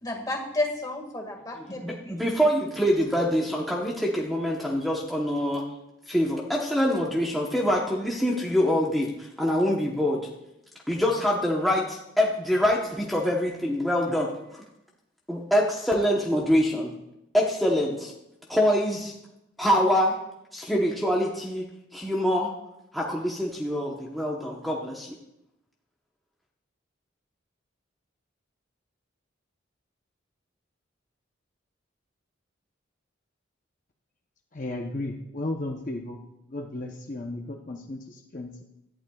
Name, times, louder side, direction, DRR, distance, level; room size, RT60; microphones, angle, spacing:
voice 1, 0.0-2.2, left 2 dB, 20° left, 1 dB, 1.9 m, -31 dB
voice 2, 1.8-5.6 6.1-10.3 10.9-14.6 15.3-16.9 17.3-18.1 18.5-19.1 19.6-20.2 20.5-21.7 21.9-22.5 22.9-25.1, equal, ahead, -3 dB, 1.0 m, -25 dB
voice 3, 34.5-36.2 36.5-38.6, left 2 dB, 40° left, 1 dB, 0.8 m, -34 dB
17.0 x 11.5 x 2.4 m, 0.86 s
head